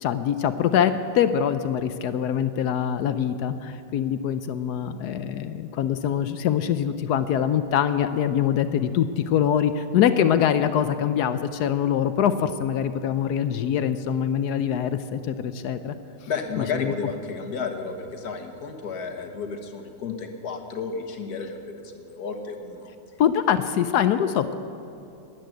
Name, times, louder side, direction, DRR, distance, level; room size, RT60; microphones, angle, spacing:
voice 1, 0.0-16.0 16.6-16.9 23.2-24.5, left 9 dB, 75° left, 11 dB, 0.9 m, -24 dB
voice 2, 16.3-22.9, left 5 dB, 55° left, 4 dB, 1.7 m, -32 dB
13.0 x 10.5 x 9.2 m, 2.8 s
omnidirectional pair, 2.2 m